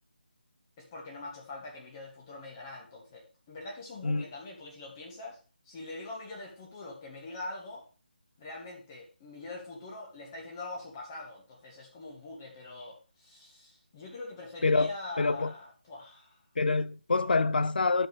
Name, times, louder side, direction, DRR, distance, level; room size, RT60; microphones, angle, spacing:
voice 1, 0.8-5.4 5.6-7.9 8.4-16.4, left 2 dB, 25° left, 2.6 m, -43 dB
voice 2, 15.2-15.5 16.6-18.1, left 3 dB, 65° left, 0.6 m, -26 dB
11.5 x 5.5 x 3.5 m
figure-of-eight pair, 160°, 5 cm